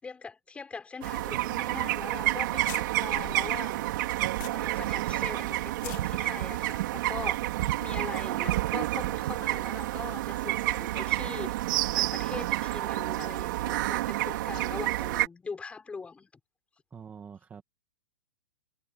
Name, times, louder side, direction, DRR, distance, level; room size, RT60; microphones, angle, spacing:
voice 1, 0.0-3.9 4.5-16.3, left 4 dB, 10° left, 6.0 m, -41 dB
sound 1, 1.0-15.3, right 16 dB, 55° right, 3.8 m, -29 dB
sound 2, 1.9-2.0 2.3-2.4 2.6-4.9 5.2-5.3 5.7-6.0, left 17 dB, 50° left, 4.6 m, -44 dB
voice 2, 16.9-17.6, right 7 dB, 15° right, 2.1 m, -45 dB
hypercardioid pair, 160°, 13 cm